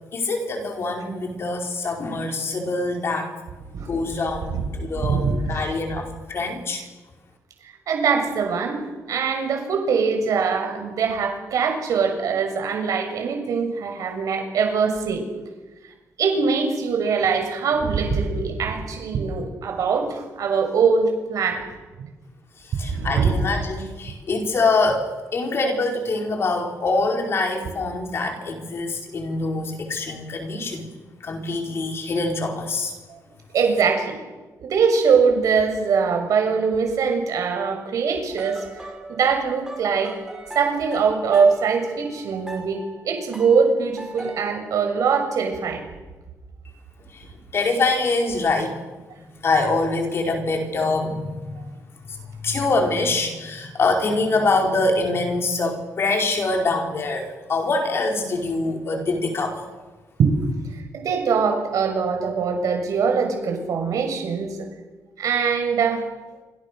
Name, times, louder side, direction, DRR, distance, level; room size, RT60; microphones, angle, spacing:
voice 1, 0.1-3.3 3.8-6.8 22.8-30.9 31.2-32.9 47.1-47.3 47.5-48.8 49.4-51.6 52.0-59.6, left 3 dB, 45° left, 3 dB, 4.9 m, -24 dB
voice 2, 5.0-5.5 7.9-8.8 9.1-15.2 16.2-21.6 22.8-23.3 33.5-34.2 34.6-38.6 39.1-40.1 40.5-45.9 51.6-51.7 60.2-60.3 60.9-64.5 65.2-66.0, right 5 dB, 70° right, 4 dB, 6.6 m, -22 dB
sound 1, 38.3-44.5, right 2 dB, 10° right, 4.7 m, -40 dB
28.0 x 26.0 x 6.7 m, 1.2 s
wide cardioid pair, 145°, 6 cm